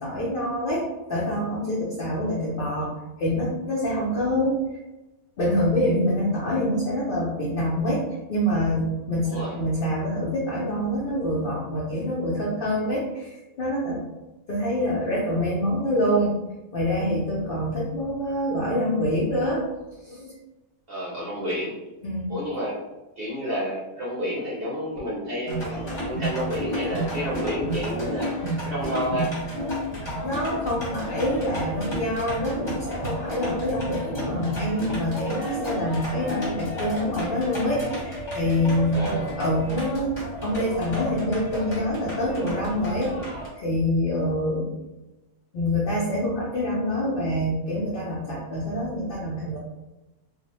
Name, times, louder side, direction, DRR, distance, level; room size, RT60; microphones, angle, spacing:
voice 1, 0.0-2.9 3.2-4.8 5.4-8.0 8.3-14.0 14.5-16.5 16.7-19.6 20.0-20.3 22.0-22.3 30.2-43.1 43.5-44.7 45.5-49.6, equal, 75° left, -5 dB, 0.5 m, -26 dB
voice 2, 20.9-21.8 22.3-22.8 23.2-25.8 26.0-28.3 28.6-29.3 38.9-39.3, equal, 55° right, -6 dB, 0.6 m, -30 dB
sound 1, 25.5-43.5, equal, 30° left, 0.6 m, -32 dB
2.4 x 2.1 x 2.9 m, 1.1 s
omnidirectional pair, 1.6 m